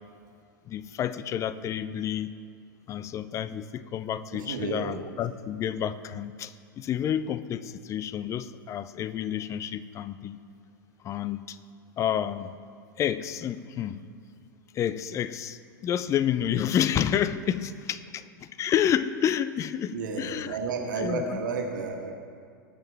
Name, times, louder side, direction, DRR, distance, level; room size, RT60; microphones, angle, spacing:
voice 1, 0.7-2.4 2.9-10.4 11.0-11.6 12.0-12.5 13.0-14.0 14.7-20.6 21.0-21.4, left 9 dB, 25° left, 14 dB, 0.5 m, -29 dB
voice 2, 4.3-5.1 19.9-22.1, right 4 dB, 65° right, 2 dB, 1.7 m, -32 dB
19.0 x 7.5 x 3.4 m, 2.3 s
figure-of-eight pair, 95°, 11 cm